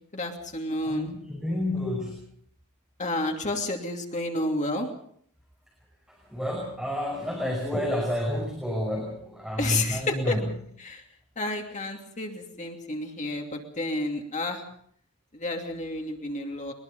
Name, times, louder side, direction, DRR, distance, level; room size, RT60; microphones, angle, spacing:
voice 1, 0.1-1.1 3.0-4.9 9.6-10.4 10.8-11.0 11.4-14.6 15.3-16.7, left 2 dB, 35° left, 2 dB, 2.8 m, -30 dB
voice 2, 0.8-2.2 6.3-10.5, equal, 5° right, -2 dB, 5.6 m, -29 dB
22.5 x 22.0 x 5.4 m, 0.63 s
head